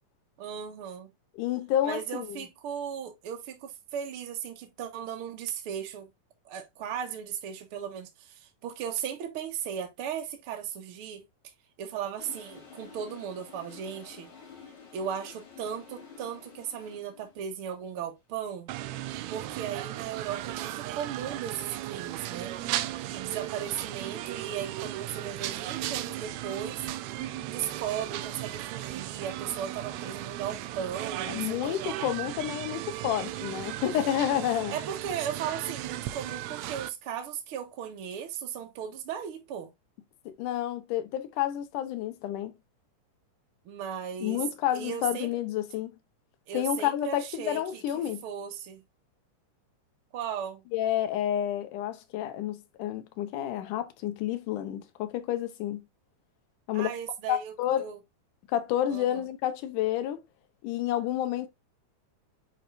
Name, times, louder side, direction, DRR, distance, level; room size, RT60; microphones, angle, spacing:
voice 1, 0.4-1.1 1.8-6.1 6.5-11.2 11.8-14.3 14.9-18.7 19.3-22.5 23.1-26.9 27.5-31.8 34.7-39.7 43.7-44.4 44.7-45.3 46.5-48.8 50.1-50.6 56.7-58.0 58.9-59.2, right 8 dB, 55° right, 1.8 m, -36 dB
voice 2, 1.3-2.4 31.3-34.8 40.3-42.5 44.2-45.9 46.5-48.2 50.7-55.8 56.7-56.9 57.3-57.9 58.5-60.2 60.6-61.5, left 11 dB, 75° left, 2.4 m, -30 dB
Toilet flush, 12.2-17.4, left 6 dB, 60° left, 3.4 m, -50 dB
sound 1, 18.7-36.9, right 14 dB, 85° right, 1.6 m, -36 dB
9.0 x 4.5 x 2.5 m
omnidirectional pair, 3.8 m